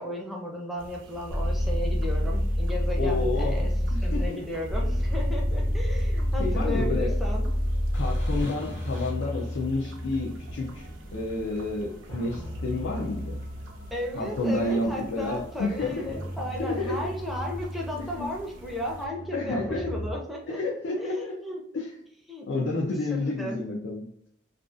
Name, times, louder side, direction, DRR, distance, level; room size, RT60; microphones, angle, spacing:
voice 1, 0.0-3.7 4.0-7.5 13.9-20.6 21.0-21.6 22.3-22.5 23.1-23.6, left 1 dB, ahead, -2 dB, 0.4 m, -35 dB
sound 1, 0.8-19.1, right 2 dB, 90° right, 0.5 m, -46 dB
sound 2, 1.3-20.1, equal, 65° left, 1.1 m, -30 dB
voice 2, 3.0-4.4 6.4-7.1 7.9-13.4 14.1-16.1 16.6-17.0 18.2-18.3 19.3-19.9 20.5-21.4 21.7-21.9 22.5-24.1, left 2 dB, 80° left, -2 dB, 0.4 m, -30 dB
2.4 x 2.3 x 2.4 m, 0.71 s
head